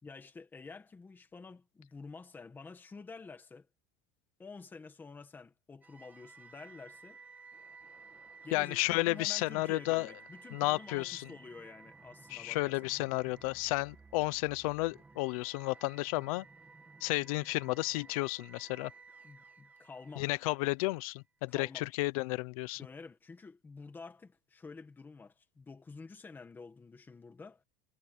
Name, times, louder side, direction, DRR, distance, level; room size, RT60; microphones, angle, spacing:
voice 1, 0.0-3.7 4.4-7.2 8.4-12.8 19.2-20.3 21.5-21.9 22.8-27.6, left 4 dB, 10° left, 1.5 m, -49 dB
sound 1, 5.8-20.9, right 4 dB, 10° right, 1.5 m, -56 dB
voice 2, 8.5-10.1 10.5-11.3 12.3-16.4 17.0-18.9 20.2-22.8, left 22 dB, 75° left, 0.7 m, -32 dB
cardioid pair, 175°, 18 cm